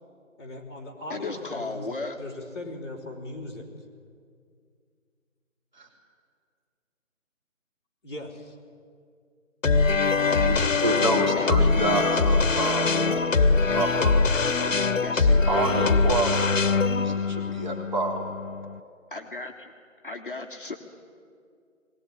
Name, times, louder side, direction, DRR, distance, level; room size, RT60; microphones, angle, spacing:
voice 1, 0.4-1.9 2.1-3.7 8.0-8.5 12.9-13.8, left 2 dB, 20° left, -7 dB, 3.6 m, -39 dB
voice 2, 1.1-2.2 10.3-10.7 11.3-11.7 15.0-15.1 19.1-19.7 20.0-20.8, left 3 dB, 40° left, 1 dB, 1.4 m, -35 dB
sound 1, 9.6-18.8, left 4 dB, 70° left, 1.2 m, -23 dB
voice 3, 10.4-12.8 13.4-13.5 13.7-14.2 14.6-18.2, right 2 dB, 35° right, 0 dB, 3.4 m, -28 dB
22.0 x 18.0 x 10.0 m, 2.2 s
figure-of-eight pair, 180°, 41 cm